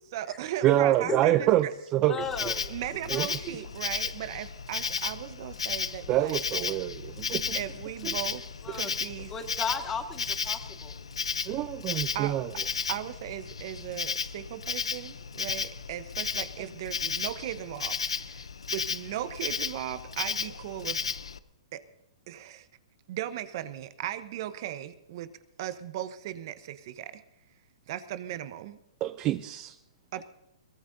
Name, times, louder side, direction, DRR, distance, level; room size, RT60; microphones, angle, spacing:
voice 1, 0.1-1.7 2.7-6.4 7.5-9.3 12.1-12.3 12.9-18.5 18.7-21.1 21.7-21.8 22.3-22.7 23.1-25.3 25.6-27.2 27.9-28.8 30.1-30.2, right 12 dB, 50° right, 12 dB, 1.0 m, -37 dB
voice 2, 0.6-2.2 2.4-2.6 3.1-3.3 6.1-7.6 8.0-8.2 11.5-12.5 29.0-29.8, right 14 dB, 30° right, 12 dB, 0.5 m, -26 dB
voice 3, 2.0-2.6 3.1-3.7 8.6-8.9 9.3-10.9, left 5 dB, 15° left, 5 dB, 1.9 m, -35 dB
Insect, 2.2-21.4, left 6 dB, 90° left, 0.7 m, -34 dB
22.5 x 17.0 x 2.7 m, 0.86 s
hypercardioid pair, 135°, 3 cm